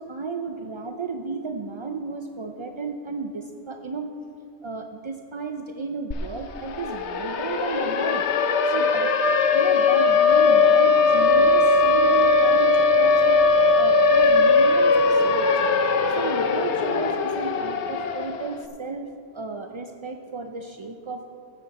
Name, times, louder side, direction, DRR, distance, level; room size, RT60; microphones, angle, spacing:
voice 1, 0.0-4.1 4.6-8.3 8.6-9.1 9.5-15.5 15.8-19.1 19.3-21.3, right 4 dB, 50° right, 5 dB, 0.3 m, -33 dB
Siren, 6.1-6.2 6.5-18.5, left 4 dB, 80° left, 1.0 m, -19 dB
15.0 x 9.1 x 4.1 m, 2.5 s
omnidirectional pair, 1.1 m